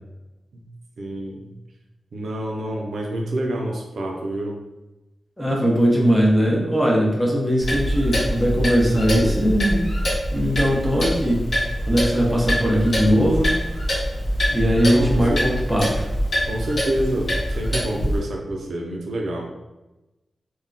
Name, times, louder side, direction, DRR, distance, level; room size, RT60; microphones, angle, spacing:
voice 1, 1.0-1.5 2.1-4.6 14.8-15.4 16.4-19.5, right 1 dB, 80° right, 0 dB, 0.4 m, -28 dB
voice 2, 5.4-9.8 10.3-11.4 11.9-13.5 14.5-16.1, equal, ahead, -3 dB, 0.6 m, -20 dB
Clock, 7.6-18.2, equal, 45° left, 1.1 m, -24 dB
2.2 x 2.1 x 3.6 m, 1.0 s
wide cardioid pair, 135°, 0 cm